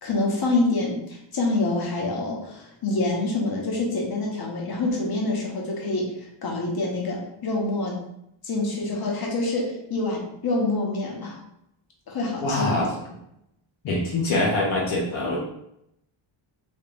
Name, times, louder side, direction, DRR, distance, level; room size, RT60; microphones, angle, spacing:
voice 1, 0.0-8.0 8.4-11.4 12.1-12.9, left 2 dB, 50° left, -1 dB, 1.0 m, -26 dB
voice 2, 12.4-12.9 13.8-15.4, left 2 dB, 70° left, -3 dB, 0.9 m, -24 dB
3.5 x 3.1 x 2.5 m, 0.79 s
cardioid pair, 90°, 49 cm